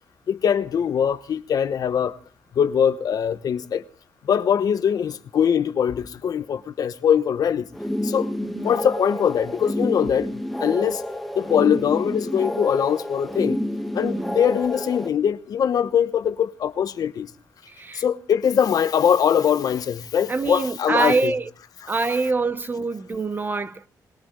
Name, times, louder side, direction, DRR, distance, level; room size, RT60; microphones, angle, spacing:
voice 1, 0.3-2.2 2.5-3.8 4.2-7.7 8.0-8.3 8.6-11.0 11.4-13.6 13.9-17.3 17.9-21.3 21.8-21.9, left 8 dB, 60° left, 1.0 m, -22 dB
sound 1, 7.7-15.1, left 1 dB, ahead, 1.3 m, -29 dB
voice 2, 8.4-8.8 14.0-14.4 17.7-18.1 20.3-21.5 21.9-23.9, right 3 dB, 30° right, 0.8 m, -25 dB
21.5 x 18.0 x 3.8 m
cardioid pair, 105°, 7 cm